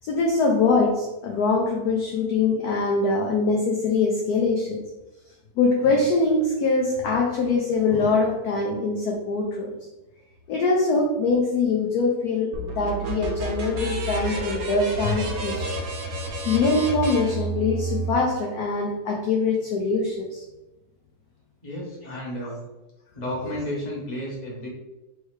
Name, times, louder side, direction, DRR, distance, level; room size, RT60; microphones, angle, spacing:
voice 1, 0.0-4.8 5.6-9.7 10.5-15.7 16.4-20.4 23.4-23.6, left 3 dB, 70° left, 0 dB, 0.9 m, -23 dB
sound 1, 12.5-18.1, right 2 dB, 60° right, 1.0 m, -30 dB
voice 2, 21.6-22.6 23.1-24.7, left 1 dB, 25° left, -4 dB, 1.1 m, -32 dB
4.3 x 3.3 x 3.2 m, 1.0 s
omnidirectional pair, 2.2 m